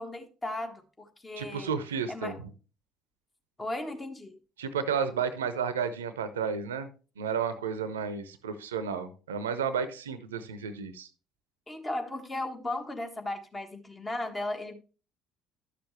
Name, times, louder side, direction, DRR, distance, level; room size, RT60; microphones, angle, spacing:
voice 1, 0.0-1.8 2.1-2.4 3.6-4.3 11.7-14.7, left 1 dB, 20° left, 1.4 m, -36 dB
voice 2, 1.4-2.5 4.6-6.9 7.2-11.1, right 6 dB, 75° right, 0.7 m, -32 dB
11.0 x 6.8 x 3.2 m
figure-of-eight pair, 55°, 0 cm